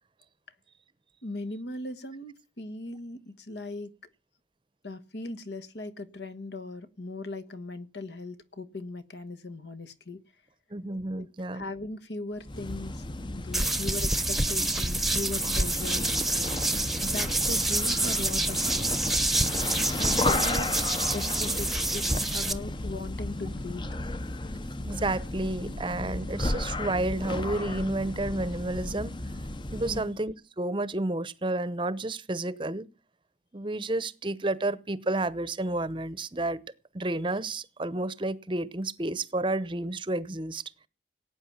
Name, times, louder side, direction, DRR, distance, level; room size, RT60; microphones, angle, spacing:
voice 1, 1.2-3.9 4.8-10.2 11.1-13.0 13.3-16.1 17.0-18.9 19.9-20.7 21.1-23.8 29.8-30.1, left 2 dB, 70° left, 1.5 m, -39 dB
voice 2, 10.7-11.6 24.8-29.1 29.7-32.8 33.5-36.6 36.9-40.6, right 2 dB, 25° right, 0.8 m, -31 dB
sound 1, 12.4-30.1, left 2 dB, 25° left, 0.7 m, -34 dB
sound 2, 13.5-22.5, right 2 dB, ahead, 1.0 m, -27 dB
17.5 x 9.1 x 7.3 m
head